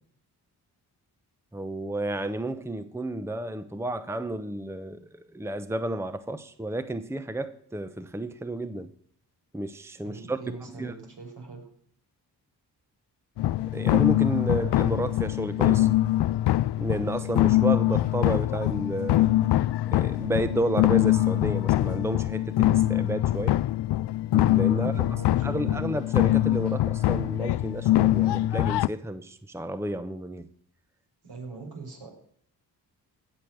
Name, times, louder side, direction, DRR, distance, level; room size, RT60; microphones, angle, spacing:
voice 1, 1.5-5.1 5.3-8.9 9.5-10.4 10.8-10.9 13.7-15.9 16.8-19.3 19.9-23.6 24.3-24.9 25.4-30.5, right 1 dB, 5° right, 0.9 m, -31 dB
voice 2, 10.0-11.7 24.7-25.9 31.2-32.1, right 4 dB, 70° right, 6.3 m, -41 dB
sound 1, 13.4-28.9, left 15 dB, 85° left, 0.5 m, -23 dB
16.5 x 6.7 x 9.4 m
cardioid pair, 85°, 40 cm